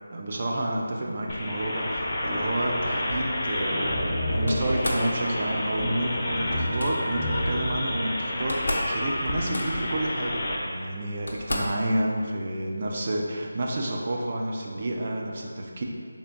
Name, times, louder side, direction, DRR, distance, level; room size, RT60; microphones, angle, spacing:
voice 1, 0.1-15.8, right 1 dB, 40° right, 0 dB, 0.4 m, -30 dB
sound 1, 1.3-10.6, left 1 dB, 25° left, 0.5 m, -29 dB
Slam, 4.5-5.1 6.5-6.9 8.0-8.1 8.3-9.0 9.2-9.9 10.7-10.8 11.3-11.8, left 1 dB, 70° left, 0.6 m, -32 dB
3.5 x 2.6 x 3.8 m, 2.2 s
figure-of-eight pair, 165°, 0 cm